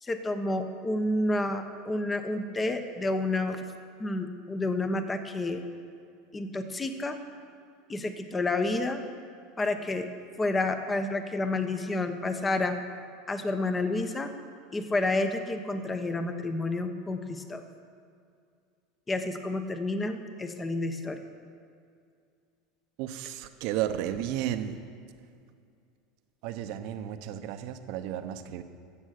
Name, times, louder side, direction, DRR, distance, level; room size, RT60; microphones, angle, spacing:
voice 1, 0.0-3.6 4.0-5.6 6.3-7.2 7.9-9.0 9.6-10.1 10.4-12.8 13.3-14.3 14.7-17.6 19.1-21.2, left 2 dB, 20° left, 8 dB, 1.0 m, -30 dB
voice 2, 23.0-24.8 26.4-28.6, right 11 dB, 65° right, 9 dB, 0.9 m, -33 dB
15.5 x 7.3 x 6.6 m, 2.3 s
supercardioid pair, 110°, 0 cm